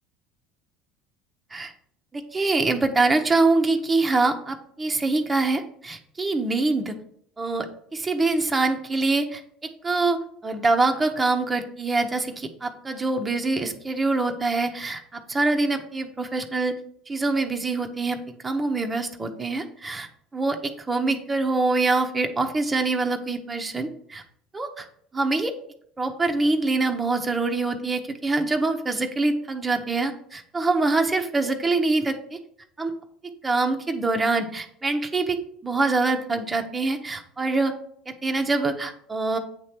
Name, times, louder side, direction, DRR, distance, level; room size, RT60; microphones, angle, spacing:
voice 1, 2.1-6.9 7.4-16.7 17.1-24.2 24.5-24.9 25.1-25.5 26.0-32.4 32.8-32.9 33.2-37.7 38.1-39.4, right 3 dB, 20° right, 4 dB, 0.9 m, -25 dB
8.3 x 3.2 x 5.9 m, 0.66 s
hypercardioid pair, 75°, 0 cm